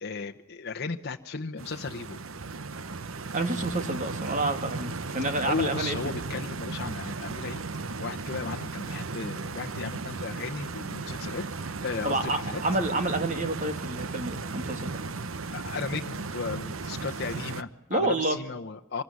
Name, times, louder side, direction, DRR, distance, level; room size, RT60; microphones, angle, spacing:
voice 1, 0.0-2.2 5.4-7.6 8.0-11.5 11.8-12.6 15.5-19.0, left 4 dB, 55° left, 3 dB, 1.0 m, -35 dB
Stream, 1.6-17.6, right 3 dB, 85° right, 1.0 m, -36 dB
voice 2, 3.3-6.0 12.0-15.0 17.9-18.4, right 2 dB, 40° right, 7 dB, 2.6 m, -29 dB
25.0 x 22.0 x 9.5 m, 0.81 s
head